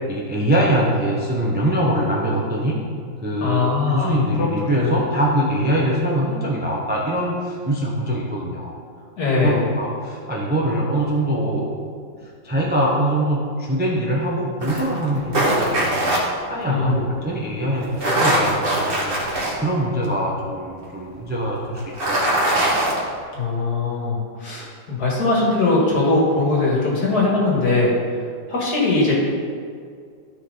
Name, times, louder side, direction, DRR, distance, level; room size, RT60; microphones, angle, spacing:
voice 1, 0.1-2.8 3.2-3.6 3.9-8.7 9.4-11.7 12.4-16.2 16.5-22.7, right 1 dB, 10° right, -3 dB, 0.4 m, -23 dB
voice 2, 3.4-4.5 4.8-5.0 9.2-9.6 16.7-17.0 23.3-27.9 28.5-29.1, left 3 dB, 55° left, -4 dB, 2.3 m, -20 dB
sound 1, 14.6-16.2 17.8-19.5 20.0-20.1 21.8-23.0, right 1 dB, 30° right, 1.5 m, -21 dB
13.0 x 4.6 x 4.0 m, 2.2 s
omnidirectional pair, 2.1 m